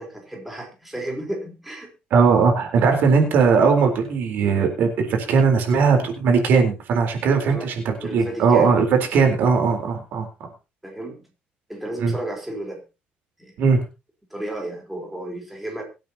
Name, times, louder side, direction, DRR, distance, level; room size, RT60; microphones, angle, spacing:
voice 1, 0.0-1.9 7.4-8.8 10.8-11.2 11.7-12.8 13.4-13.5 14.3-15.8, right 1 dB, 5° right, 0 dB, 4.1 m, -33 dB
voice 2, 2.1-10.3 12.0-12.1 13.6-13.8, right 5 dB, 65° right, 4 dB, 4.0 m, -19 dB
23.5 x 8.9 x 2.9 m, 0.28 s
cardioid pair, 135°, 3 cm